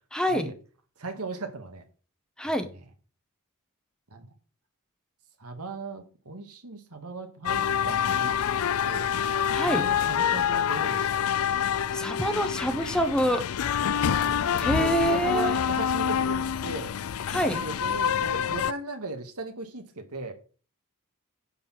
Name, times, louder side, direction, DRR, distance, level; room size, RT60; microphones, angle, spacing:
voice 1, 0.1-0.5 2.4-2.7 9.5-9.8 11.9-13.4 14.6-15.5 17.3-17.6, equal, 5° left, 8 dB, 1.1 m, -26 dB
voice 2, 1.0-1.8 2.6-2.8 4.1-4.3 5.4-9.1 9.6-11.3 11.7-11.8 14.0-16.9 17.5-20.3, right 3 dB, 90° right, 5 dB, 2.1 m, -38 dB
sound 1, 7.5-18.7, left 8 dB, 70° left, 0.4 m, -27 dB
10.5 x 4.3 x 7.6 m, 0.37 s
head